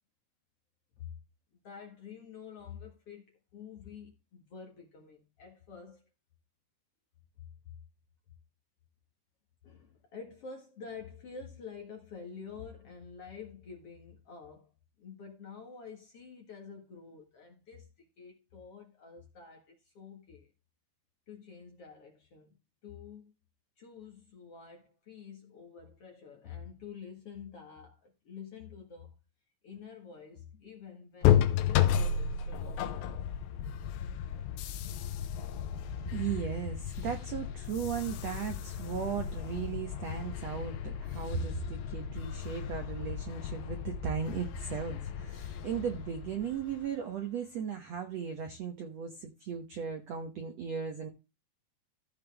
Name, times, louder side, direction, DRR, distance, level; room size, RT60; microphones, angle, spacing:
voice 1, 1.6-6.0 7.6-7.8 9.6-14.7 15.0-20.5 21.3-22.6 22.8-23.3 23.8-29.1 29.6-33.3, left 6 dB, 50° left, 1.9 m, -48 dB
sound 1, 31.2-46.9, left 9 dB, 90° left, 3.1 m, -33 dB
voice 2, 36.1-51.1, right 7 dB, 85° right, 1.4 m, -36 dB
15.0 x 5.4 x 3.4 m
omnidirectional pair, 4.8 m